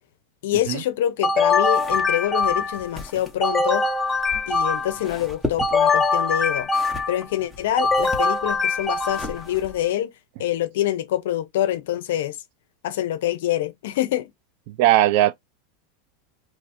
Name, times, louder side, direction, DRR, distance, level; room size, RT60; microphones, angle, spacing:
voice 1, 0.4-3.9 4.5-6.7 7.1-10.1 10.4-12.4 12.8-14.3, left 12 dB, 80° left, 0.5 m, -25 dB
sound 1, 1.2-2.9 3.4-5.1 5.6-7.2 7.8-9.5, left 4 dB, 15° left, 0.5 m, -22 dB
sound 2, 1.6-9.9, left 2 dB, 5° right, 0.9 m, -38 dB
voice 2, 14.7-15.3, right 14 dB, 55° right, 0.3 m, -18 dB
2.8 x 2.4 x 4.1 m
supercardioid pair, 145°, 0 cm